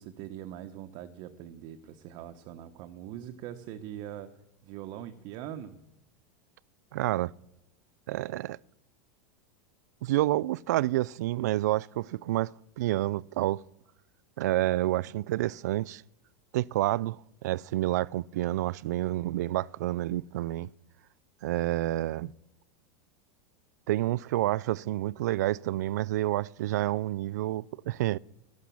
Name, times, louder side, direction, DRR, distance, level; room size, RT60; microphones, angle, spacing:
voice 1, 0.0-4.4 4.6-5.8, right 11 dB, 50° right, 1.1 m, -42 dB
voice 2, 6.9-7.3 8.1-8.6 10.0-13.6 14.4-16.0 16.5-20.7 21.4-22.3 23.9-28.2, right 15 dB, 80° right, 0.4 m, -29 dB
12.0 x 11.5 x 7.1 m
supercardioid pair, 125°, 9 cm